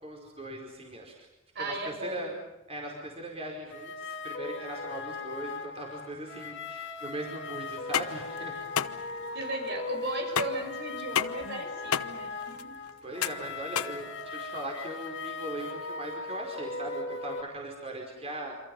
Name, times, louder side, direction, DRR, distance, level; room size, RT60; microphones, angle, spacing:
voice 1, 0.0-1.3 1.6-2.3 2.7-8.6 13.0-18.5, right 1 dB, 30° right, 0 dB, 4.9 m, -39 dB
voice 2, 1.5-2.3 9.3-12.8, right 1 dB, 50° right, 3 dB, 6.4 m, -36 dB
sound 1, 3.7-17.4, left 3 dB, 55° left, 2.4 m, -39 dB
sound 2, 7.7-14.7, left 8 dB, 85° left, 1.0 m, -33 dB
28.5 x 26.5 x 5.6 m, 0.97 s
head